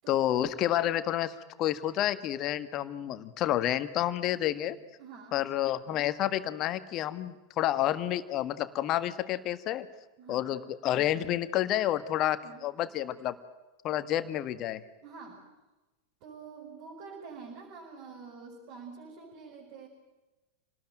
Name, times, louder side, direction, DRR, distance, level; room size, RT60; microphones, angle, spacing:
voice 1, 0.1-4.8 5.3-9.9 10.3-13.4 13.8-14.8, left 12 dB, 35° left, 12 dB, 1.7 m, -29 dB
voice 2, 5.0-5.5 10.2-10.6 12.4-12.7 15.0-15.5 16.2-19.9, right 5 dB, 45° right, -2 dB, 6.4 m, -47 dB
28.5 x 19.5 x 9.2 m, 1.1 s
figure-of-eight pair, 90°, 0 cm